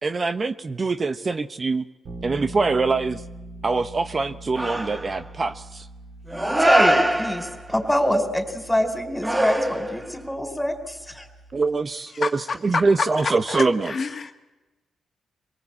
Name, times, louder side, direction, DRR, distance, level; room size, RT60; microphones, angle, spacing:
voice 1, 0.0-1.8 2.2-3.2 3.6-5.9 11.5-14.0, right 3 dB, 40° right, 10 dB, 1.0 m, -24 dB
Bass guitar, 2.0-11.9, right 2 dB, 60° right, 4.8 m, -43 dB
sound 1, 4.6-5.3 6.3-7.8 9.2-10.2, right 1 dB, 15° right, 1.7 m, -22 dB
voice 2, 6.6-11.3, left 1 dB, 10° left, 6 dB, 4.4 m, -25 dB
voice 3, 13.5-14.3, left 4 dB, 50° left, 5 dB, 1.9 m, -27 dB
26.0 x 19.0 x 8.6 m, 1.1 s
supercardioid pair, 60°, 0 cm